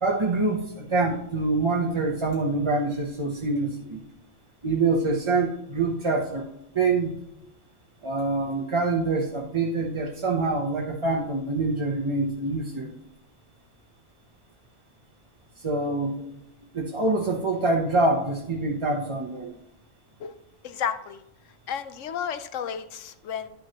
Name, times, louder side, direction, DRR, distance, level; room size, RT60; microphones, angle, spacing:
voice 1, 0.0-4.0 4.6-6.5 6.7-7.2 8.0-12.9 15.6-16.2 16.7-19.5, right 3 dB, 30° right, 0 dB, 0.7 m, -25 dB
voice 2, 20.6-21.2 21.7-23.5, left 8 dB, 85° left, 11 dB, 1.0 m, -32 dB
11.0 x 6.1 x 2.9 m, 0.82 s
omnidirectional pair, 1.3 m